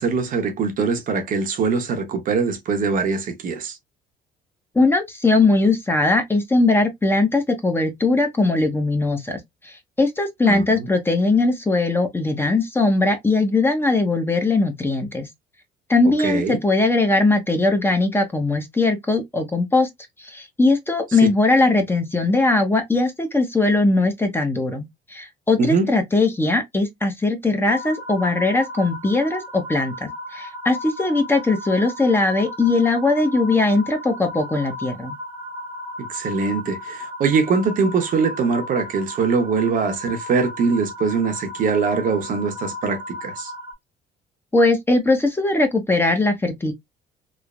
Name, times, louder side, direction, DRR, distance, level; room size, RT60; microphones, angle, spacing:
voice 1, 0.0-3.8 10.5-10.9 16.2-16.6 25.6-25.9 36.0-43.5, right 5 dB, 55° right, 0.8 m, -22 dB
voice 2, 4.7-15.3 15.9-19.9 20.2-35.1 44.5-46.7, left 2 dB, 15° left, 0.7 m, -20 dB
sound 1, 27.6-43.7, left 1 dB, 20° right, 0.8 m, -35 dB
3.1 x 2.0 x 2.3 m
cardioid pair, 110°, 17 cm